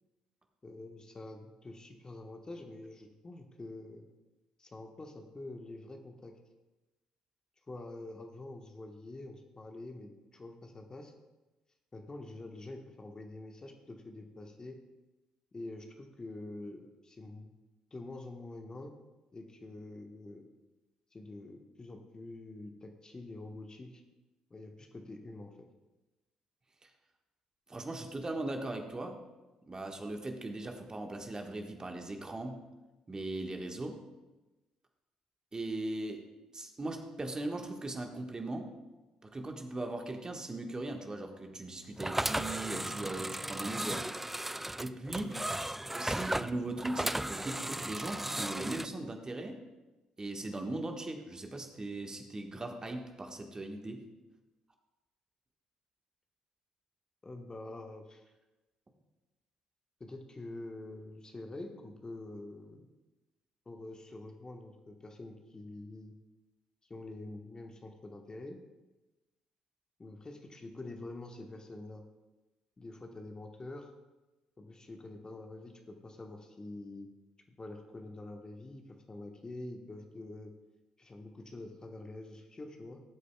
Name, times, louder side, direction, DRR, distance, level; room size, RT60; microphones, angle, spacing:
voice 1, 0.6-4.1 4.6-6.3 7.7-11.1 11.9-14.8 15.5-17.6 17.9-18.9 19.3-20.5 21.1-24.0 24.5-25.5 45.2-45.4 57.2-58.2 60.0-62.9 63.6-66.1 66.9-68.6 70.0-72.0 72.8-73.9 74.6-77.1 77.5-80.5 81.0-83.0, left 2 dB, 25° left, 3 dB, 1.3 m, -46 dB
voice 2, 27.7-29.2 29.7-32.6 33.1-34.0 35.5-36.3 36.5-38.7 39.2-44.1 44.8-45.4 45.9-49.6 50.2-54.0, right 2 dB, 25° right, 3 dB, 1.4 m, -39 dB
sound 1, 42.0-48.9, right 1 dB, 10° right, 0.4 m, -35 dB
18.5 x 8.2 x 2.3 m, 1.1 s
hypercardioid pair, 45°, 3 cm